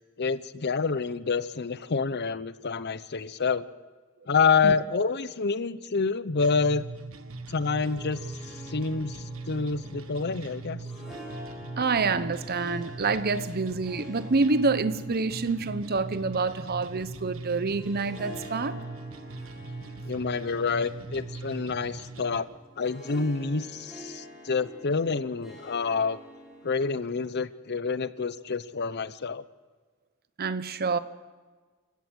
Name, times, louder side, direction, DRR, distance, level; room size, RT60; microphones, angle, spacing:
voice 1, 0.2-3.7 4.3-6.9 7.5-10.8 20.0-22.5 22.8-26.2 26.6-29.4, left 5 dB, 50° left, 0.8 m, -28 dB
sound 1, 6.4-22.4, right 3 dB, 75° right, 1.5 m, -40 dB
Harp, 7.6-27.4, equal, ahead, 6.3 m, -47 dB
voice 2, 11.8-18.8 30.4-31.0, right 4 dB, 45° right, 0.9 m, -27 dB
28.0 x 16.0 x 6.3 m
head